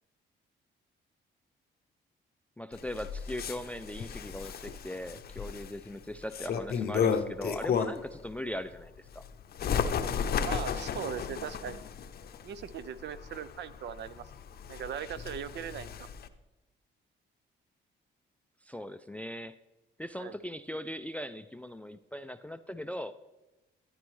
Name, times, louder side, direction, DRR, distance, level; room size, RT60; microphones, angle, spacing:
voice 1, 2.6-9.2 18.6-19.5 20.0-23.1, left 1 dB, 5° left, 14 dB, 0.3 m, -39 dB
Bird, 2.7-8.2 8.6-16.3, left 7 dB, 50° left, 0.6 m, -34 dB
voice 2, 10.4-11.8 12.4-14.3 14.7-16.1 20.2-20.3, right 8 dB, 60° right, 15 dB, 0.5 m, -39 dB
11.0 x 9.6 x 3.1 m, 1.1 s
cardioid pair, 90°, 20 cm